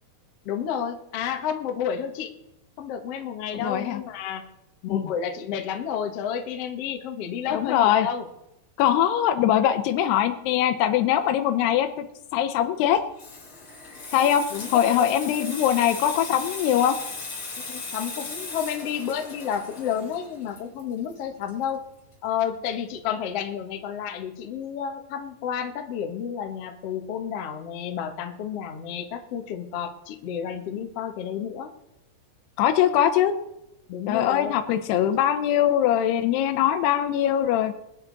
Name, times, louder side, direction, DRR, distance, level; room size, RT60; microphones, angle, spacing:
voice 1, 0.4-2.3 2.8-4.4 4.8-8.3 14.5-15.1 17.7-21.8 22.2-31.7 33.9-34.5, left 8 dB, 65° left, 5 dB, 1.5 m, -31 dB
voice 2, 3.5-4.0 4.9-5.0 7.5-8.1 8.8-11.9 12.3-13.0 14.1-14.4 14.7-17.0 32.6-33.3 34.1-37.7, left 10 dB, 80° left, 6 dB, 2.9 m, -22 dB
Water tap faucet / Sink (filling or washing), 12.8-22.1 22.4-22.7, left 3 dB, 35° left, 3.7 m, -37 dB
22.5 x 9.8 x 4.0 m, 0.86 s
omnidirectional pair, 4.7 m